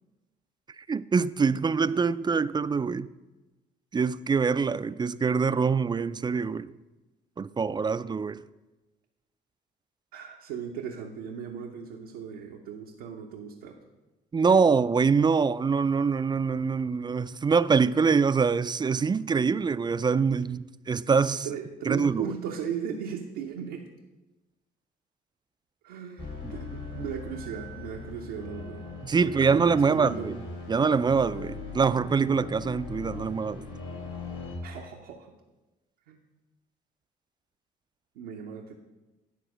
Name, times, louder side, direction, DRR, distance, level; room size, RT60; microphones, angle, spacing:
voice 1, 0.8-3.1 3.9-6.7 7.4-8.4 14.3-21.5 21.9-22.3 26.4-26.5 29.0-30.3 30.7-33.7, right 5 dB, 20° right, 0.3 m, -24 dB
voice 2, 10.1-13.8 21.4-23.9 25.8-28.9 29.2-30.3 34.6-35.3 36.1-36.2 38.2-38.7, right 7 dB, 85° right, 0.7 m, -37 dB
sound 1, 26.2-34.6, left 4 dB, 70° left, 2.8 m, -40 dB
10.5 x 4.1 x 6.1 m
hypercardioid pair, 55°, 20 cm